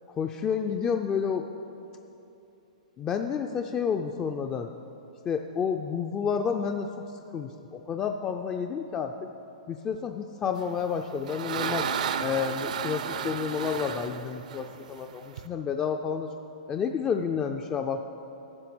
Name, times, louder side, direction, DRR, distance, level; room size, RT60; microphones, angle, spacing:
voice 1, 0.2-1.5 3.0-4.7 5.3-7.0 7.3-9.3 9.7-11.9 12.2-16.3 16.7-18.0, left 6 dB, 20° left, 5 dB, 0.4 m, -30 dB
sound 1, 10.8-15.5, right 7 dB, 70° right, 0.6 m, -33 dB
10.5 x 6.5 x 7.8 m, 2.8 s
hypercardioid pair, 145°, 4 cm